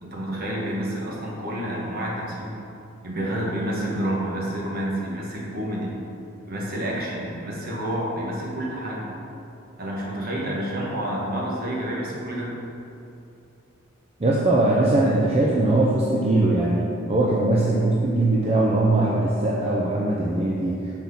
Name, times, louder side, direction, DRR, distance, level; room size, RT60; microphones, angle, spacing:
voice 1, 0.0-2.6 3.0-5.9 6.4-9.0 9.8-12.6, right 1 dB, 50° right, -4 dB, 1.4 m, -29 dB
voice 2, 14.2-20.8, right 2 dB, 30° right, -4 dB, 0.6 m, -21 dB
6.1 x 4.4 x 5.5 m, 2.7 s
head